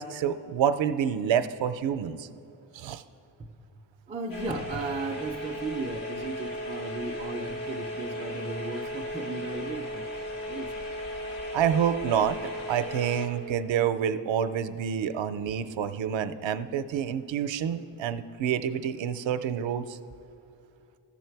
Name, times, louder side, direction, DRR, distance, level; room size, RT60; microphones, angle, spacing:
voice 1, 0.0-2.3 2.7-3.0 11.5-12.4 12.7-20.0, right 8 dB, 75° right, 11 dB, 0.5 m, -28 dB
voice 2, 4.1-10.1 10.5-10.7, right 3 dB, 15° right, 2 dB, 0.4 m, -35 dB
sound 1, 4.3-13.3, equal, 75° left, 1.7 m, -36 dB
13.0 x 7.2 x 4.6 m, 2.8 s
wide cardioid pair, 170°, 46 cm